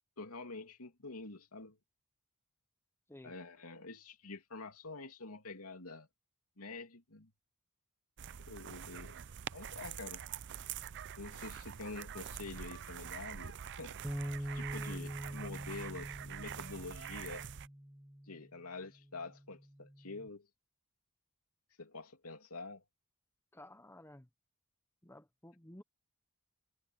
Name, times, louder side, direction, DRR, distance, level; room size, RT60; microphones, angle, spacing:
voice 1, 0.2-1.8 3.2-6.1 6.6-7.3 8.5-9.2 9.5-10.2 11.2-14.0 14.5-17.5 18.3-20.5 21.8-22.8, left 3 dB, 85° left, 2.9 m, -47 dB
sound 1, 8.2-17.7, right 9 dB, 55° right, 0.5 m, -45 dB
Bass guitar, 14.0-18.5 19.1-20.3, equal, 5° right, 0.6 m, -44 dB
voice 2, 23.5-24.3 25.0-25.8, left 1 dB, 10° left, 1.0 m, -54 dB
head